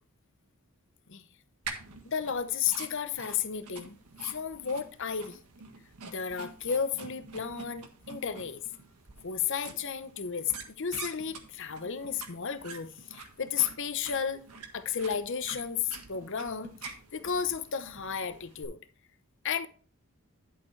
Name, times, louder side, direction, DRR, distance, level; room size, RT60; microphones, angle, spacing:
sound 1, 1.6-18.6, right 4 dB, 85° right, 1.6 m, -47 dB
voice 1, 2.1-4.0 4.2-5.4 6.0-8.6 9.2-14.4 14.7-18.8 19.4-19.7, left 7 dB, 55° left, 0.8 m, -33 dB
11.0 x 6.7 x 3.2 m
head